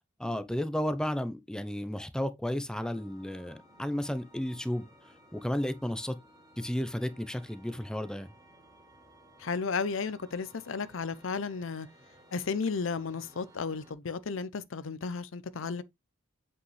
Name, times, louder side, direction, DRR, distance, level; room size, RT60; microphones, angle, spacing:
voice 1, 0.2-4.9 5.3-6.2 6.6-8.3, equal, 5° left, 0.7 m, -33 dB
sound 1, 2.7-13.9, right 1 dB, 20° right, 2.0 m, -58 dB
voice 2, 9.4-11.9 12.3-15.8, left 5 dB, 70° left, 0.6 m, -33 dB
7.9 x 5.5 x 3.3 m
head